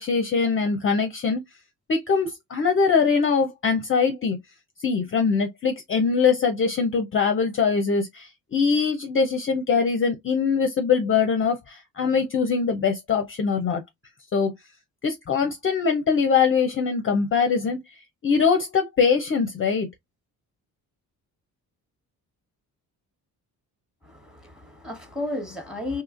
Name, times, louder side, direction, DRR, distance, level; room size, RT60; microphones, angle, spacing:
voice 1, 0.0-1.4 1.9-4.4 4.8-13.8 14.3-14.5 15.0-17.8 18.2-19.9, left 5 dB, 35° left, 0.5 m, -22 dB
voice 2, 24.0-26.0, left 2 dB, ahead, 1.1 m, -33 dB
2.8 x 2.4 x 2.4 m
cardioid pair, 75°, 38 cm